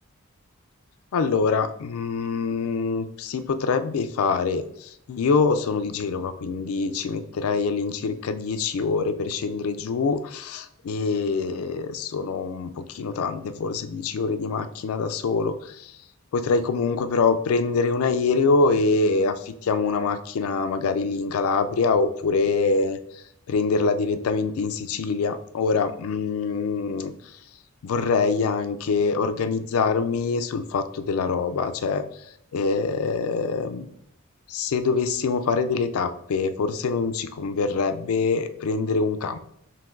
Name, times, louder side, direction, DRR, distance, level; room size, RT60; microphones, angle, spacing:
voice 1, 1.1-15.9 16.3-23.0 23.5-27.1 27.8-32.0 32.5-33.9 34.5-39.4, left 4 dB, 75° left, 10 dB, 0.4 m, -24 dB
5.6 x 2.6 x 2.5 m, 0.72 s
head